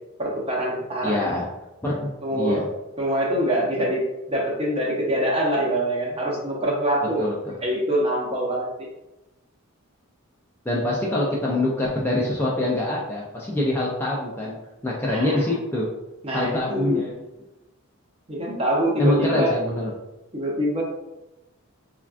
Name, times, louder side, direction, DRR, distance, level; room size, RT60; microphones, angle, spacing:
voice 1, 0.2-1.3 2.2-2.6 3.0-7.3 7.6-8.9 15.1-15.4 16.2-17.1 18.3-19.6 20.3-20.8, equal, 25° right, -2 dB, 0.6 m, -24 dB
voice 2, 1.0-1.5 1.8-2.6 7.2-7.3 10.7-14.5 14.8-15.9 16.3-17.1 19.0-19.9, left 1 dB, 10° left, -5 dB, 0.3 m, -24 dB
3.3 x 2.3 x 2.4 m, 0.98 s
head